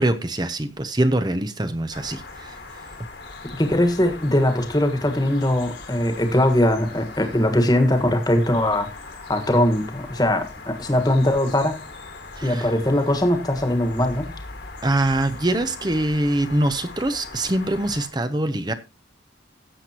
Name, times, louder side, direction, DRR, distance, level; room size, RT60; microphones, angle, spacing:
voice 1, 0.0-2.5 12.4-12.7 14.8-18.7, right 1 dB, 20° right, 0.7 m, -23 dB
sound 1, 1.9-18.1, left 3 dB, 60° left, 1.9 m, -40 dB
voice 2, 3.6-8.9 9.3-11.8 12.4-14.3, left 1 dB, 20° left, 1.5 m, -21 dB
16.5 x 7.7 x 2.9 m
head